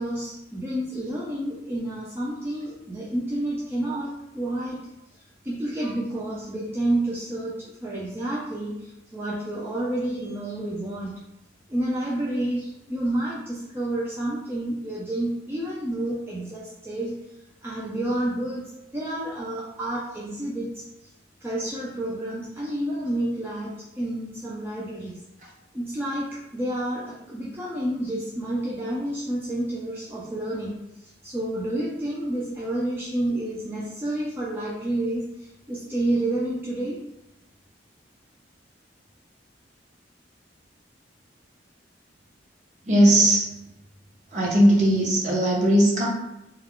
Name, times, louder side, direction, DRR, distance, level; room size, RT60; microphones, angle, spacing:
voice 1, 0.0-4.8 5.4-11.2 11.7-17.2 17.6-21.1 21.4-25.2 25.7-37.0, right 1 dB, 10° right, -6 dB, 0.3 m, -29 dB
voice 2, 42.9-43.4 44.3-46.1, right 1 dB, 40° right, -3 dB, 0.7 m, -18 dB
2.2 x 2.1 x 3.6 m, 0.90 s
head